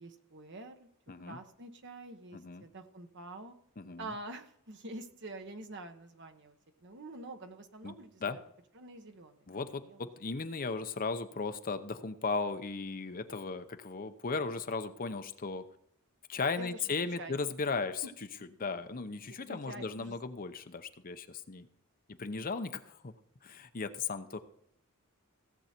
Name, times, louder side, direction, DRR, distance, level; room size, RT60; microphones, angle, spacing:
voice 1, 0.0-0.9 1.2-3.5 4.0-6.5 6.8-8.4 8.7-10.1 16.6-17.4 18.0-18.1 19.1-20.2, right 1 dB, 55° right, 7 dB, 1.2 m, -47 dB
voice 2, 1.1-1.4 2.3-2.6 3.8-4.1 7.8-7.9 8.2-8.4 9.5-15.6 16.3-18.0 18.6-21.7 22.2-23.1 23.4-24.4, left 4 dB, 40° left, 9 dB, 0.7 m, -36 dB
16.5 x 8.0 x 4.4 m, 0.72 s
head